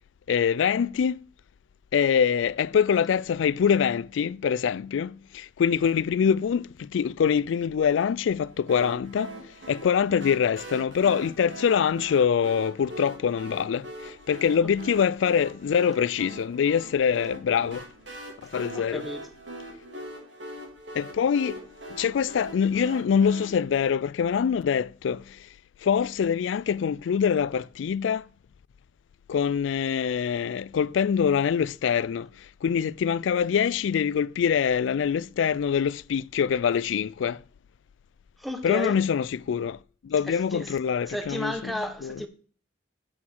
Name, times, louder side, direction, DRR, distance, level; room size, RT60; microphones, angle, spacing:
voice 1, 0.3-1.2 1.9-9.3 9.7-13.9 14.3-17.8 18.5-19.0 21.0-21.6 22.0-25.2 25.8-28.2 29.3-32.3 32.6-37.4 38.6-39.8 40.0-42.2, left 7 dB, 75° left, 0.3 m, -24 dB
sound 1, 8.7-23.5, right 1 dB, 70° right, 2.9 m, -42 dB
voice 2, 18.7-19.2 38.4-39.0 40.3-40.8 41.0-42.3, equal, ahead, 1.0 m, -33 dB
8.2 x 7.1 x 4.6 m
head